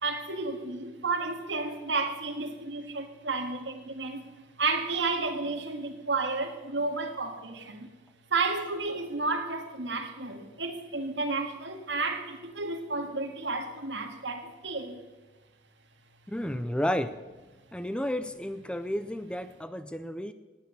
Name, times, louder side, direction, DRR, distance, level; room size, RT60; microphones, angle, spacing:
voice 1, 0.0-4.2 4.6-7.9 8.3-15.0 16.4-16.5, right 3 dB, 65° right, 5 dB, 1.8 m, -32 dB
voice 2, 16.3-17.2 17.7-20.3, left 1 dB, 5° left, 12 dB, 0.4 m, -32 dB
18.0 x 9.2 x 6.7 m, 1.2 s
head